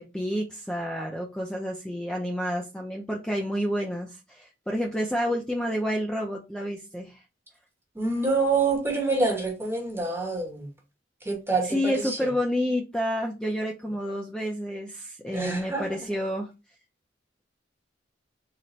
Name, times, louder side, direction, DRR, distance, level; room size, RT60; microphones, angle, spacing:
voice 1, 0.0-7.2 11.6-16.5, equal, 5° left, 0.4 m, -29 dB
voice 2, 8.0-10.7 11.3-12.2 15.3-15.8, right 3 dB, 15° right, 1.0 m, -26 dB
4.0 x 2.1 x 4.2 m
head